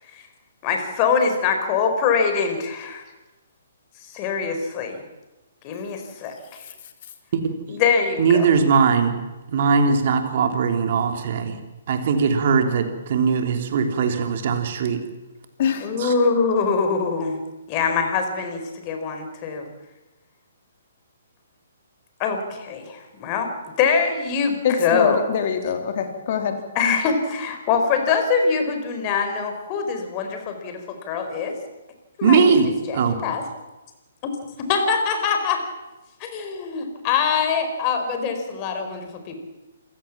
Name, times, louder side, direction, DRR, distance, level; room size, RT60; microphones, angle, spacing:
voice 1, 0.6-3.0 4.1-5.0 5.6-6.6 7.7-8.5 15.8-17.4 17.7-19.7 22.2-23.5 23.8-25.2 26.7-31.5 32.2-33.4 34.2-34.3 34.6-35.6 36.2-39.4, left 5 dB, 30° left, 6 dB, 4.5 m, -23 dB
voice 2, 7.3-7.8 8.2-9.2 9.5-11.6 11.9-15.0 16.0-16.1 32.2-33.2, right 5 dB, 50° right, 6 dB, 3.2 m, -20 dB
voice 3, 24.6-26.6, left 7 dB, 45° left, 5 dB, 3.5 m, -24 dB
27.5 x 15.5 x 7.4 m, 1.1 s
figure-of-eight pair, 130°, 0 cm